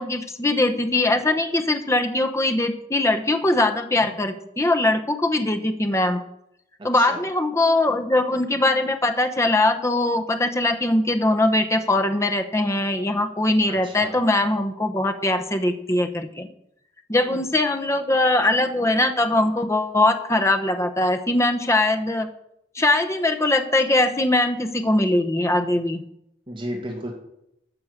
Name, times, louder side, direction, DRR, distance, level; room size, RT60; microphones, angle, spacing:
voice 1, 0.0-6.2 6.8-16.5 17.1-22.3 22.7-26.0, left 2 dB, 15° left, 6 dB, 1.0 m, -21 dB
voice 2, 6.8-7.2 13.7-14.2 17.1-17.5 26.5-27.1, equal, 30° right, 0 dB, 2.4 m, -34 dB
13.0 x 6.6 x 6.7 m, 0.79 s
head